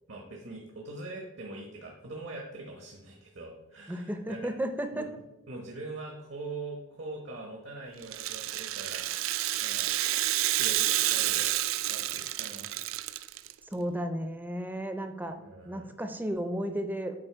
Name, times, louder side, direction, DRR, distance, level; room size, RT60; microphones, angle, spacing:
voice 1, 0.1-4.5 4.9-5.1 5.5-9.1 9.6-9.9 10.5-11.5 11.8-12.7 15.3-15.9, right 2 dB, 60° right, 0 dB, 1.1 m, -43 dB
voice 2, 3.9-5.1 13.7-15.4 15.6-17.1, equal, 10° right, 7 dB, 0.5 m, -33 dB
Rattle (instrument), 8.0-13.5, right 15 dB, 85° right, 0.3 m, -29 dB
7.8 x 4.4 x 4.5 m, 0.96 s
head